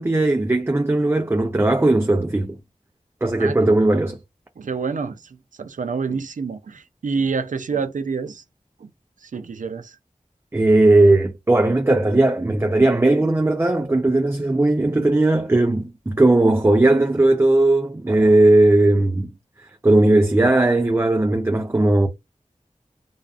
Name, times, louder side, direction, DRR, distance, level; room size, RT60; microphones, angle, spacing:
voice 1, 0.0-2.6 3.2-4.2 10.5-19.3 19.8-22.1, right 2 dB, 20° right, 0.4 m, -17 dB
voice 2, 3.4-3.7 4.6-8.4 8.8-8.9 9.2-10.0, right 5 dB, 85° right, 0.4 m, -28 dB
2.4 x 2.3 x 2.3 m
wide cardioid pair, 50°, 13 cm